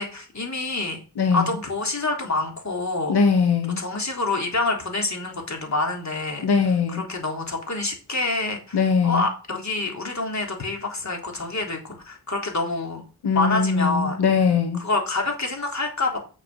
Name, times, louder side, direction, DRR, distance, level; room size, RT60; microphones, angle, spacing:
voice 1, 0.0-1.0 1.3-3.2 3.8-6.5 6.9-13.1 13.3-14.2 14.8-16.2, left 2 dB, 45° left, 2 dB, 3.5 m, -27 dB
voice 2, 1.2-1.5 3.1-3.8 6.4-7.0 8.7-9.3 13.2-14.8, left 5 dB, 85° left, 5 dB, 1.2 m, -21 dB
8.9 x 6.5 x 5.5 m, 0.36 s
cardioid pair, 70°, 39 cm